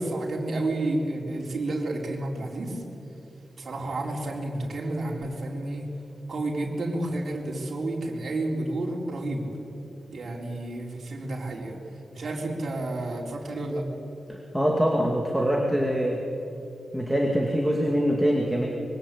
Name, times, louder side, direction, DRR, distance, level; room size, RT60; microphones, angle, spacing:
voice 1, 0.0-2.8 3.6-5.9 6.3-9.5 10.1-11.8 12.1-13.9, right 2 dB, 50° right, -1 dB, 4.5 m, -30 dB
voice 2, 14.3-16.2 16.9-18.7, equal, ahead, 0 dB, 2.4 m, -24 dB
25.5 x 23.0 x 8.6 m, 2.8 s
wide cardioid pair, 145°, 0 cm